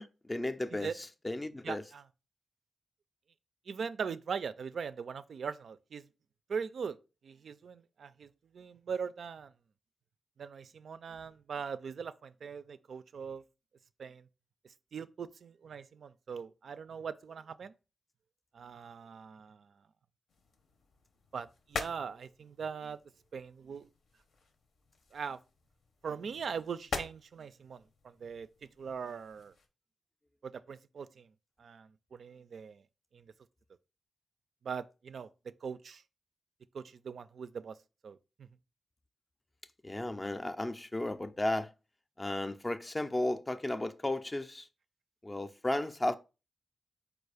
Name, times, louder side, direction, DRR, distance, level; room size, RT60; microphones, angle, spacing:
voice 1, 0.0-1.8 39.8-41.7 42.2-44.7 45.2-46.2, left 1 dB, 20° left, 0.4 m, -34 dB
voice 2, 1.6-2.0 3.7-6.0 6.5-7.0 7.2-9.5 10.4-13.4 14.0-14.2 14.9-17.7 18.5-19.7 21.3-23.0 23.3-23.9 25.1-25.4 26.0-29.5 30.4-31.3 31.6-32.8 33.1-33.2 34.6-36.0 36.7-37.8 38.0-38.5, right 6 dB, 70° right, 0.3 m, -41 dB
sound 1, 20.3-29.7, left 4 dB, 80° left, 0.7 m, -46 dB
4.6 x 2.4 x 4.8 m
wide cardioid pair, 110°, 0 cm